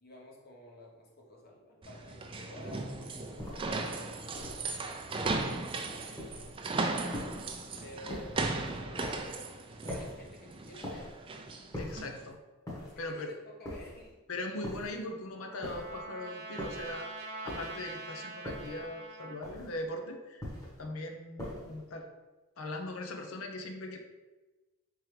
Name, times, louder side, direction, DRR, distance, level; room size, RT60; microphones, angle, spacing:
voice 1, 0.0-7.0 7.8-11.1 12.2-12.3 12.8-14.2, left 1 dB, 45° left, -2 dB, 1.0 m, -52 dB
sound 1, 1.8-12.2, right 3 dB, 25° right, 0.4 m, -37 dB
sound 2, 3.4-3.8 4.3-4.7 5.2-5.6 6.2-6.6 7.1-7.6 8.1-8.5 9.0-9.3 9.9-10.3 10.8-11.2 11.7-12.1 12.7-13.1 13.6-14.1 14.6-15.0 15.6-16.0 16.6-16.9 17.5-17.9 18.4-18.8 19.4-19.8 20.4-20.8 21.4-21.8, left 1 dB, 15° left, 1.1 m, -42 dB
voice 2, 11.7-12.4 13.0-13.3 14.3-17.2 17.4-20.5 20.8-22.1 22.6-24.0, left 1 dB, 85° left, 4 dB, 0.7 m, -40 dB
Trumpet, 14.8-19.5, right 2 dB, 50° right, 0.8 m, -44 dB
4.5 x 3.6 x 3.2 m, 1.2 s
head